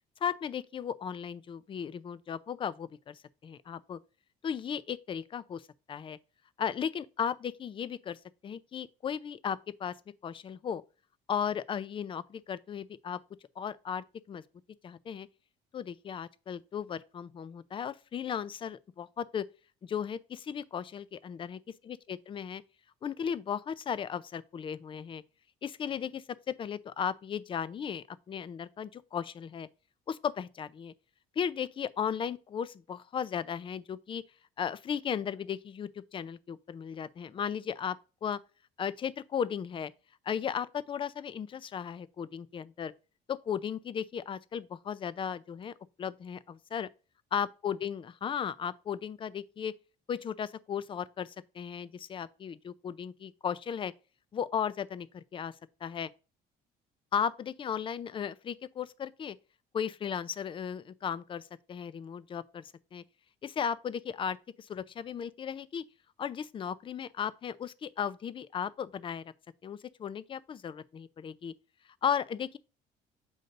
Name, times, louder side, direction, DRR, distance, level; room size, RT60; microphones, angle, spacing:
voice 1, 0.2-4.0 4.4-5.6 5.9-6.2 6.6-9.9 10.2-10.8 11.3-13.2 13.6-14.4 14.8-15.3 15.7-19.5 19.8-22.6 23.0-25.2 25.6-29.7 30.1-30.9 31.4-34.2 34.6-38.0 38.2-38.4 38.8-39.9 40.3-42.9 43.3-45.7 46.0-46.9 47.3-49.7 50.1-53.9 54.3-55.5 55.8-56.1 57.1-59.4 59.7-61.4 61.7-63.0 63.4-65.8 66.2-69.2 69.6-71.5 72.0-72.6, left 8 dB, 30° left, 0.4 m, -36 dB
7.8 x 2.7 x 5.2 m
cardioid pair, 110°, 17 cm